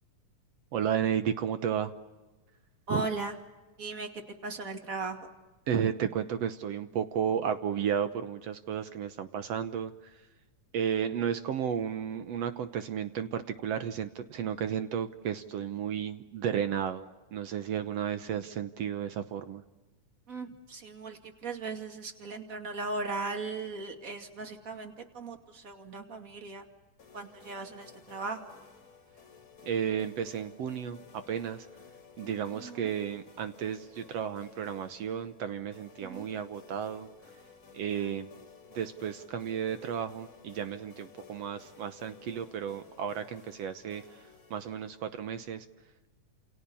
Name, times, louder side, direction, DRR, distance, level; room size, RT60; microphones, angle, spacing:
voice 1, 0.7-1.9 2.9-3.1 5.7-10.2 10.7-19.6 29.6-31.0 31.3-31.7 32.2-37.1 37.7-38.3 38.7-45.7, right 8 dB, 65° right, 10 dB, 1.7 m, -33 dB
voice 2, 2.9-3.4 3.8-5.3 20.3-26.7 27.1-28.5 32.5-32.9 36.0-36.3 37.9-38.1, right 3 dB, 25° right, 6 dB, 2.4 m, -38 dB
sound 1, 27.0-45.6, left 6 dB, 40° left, 4.0 m, -55 dB
30.0 x 28.5 x 7.0 m, 1.1 s
omnidirectional pair, 3.8 m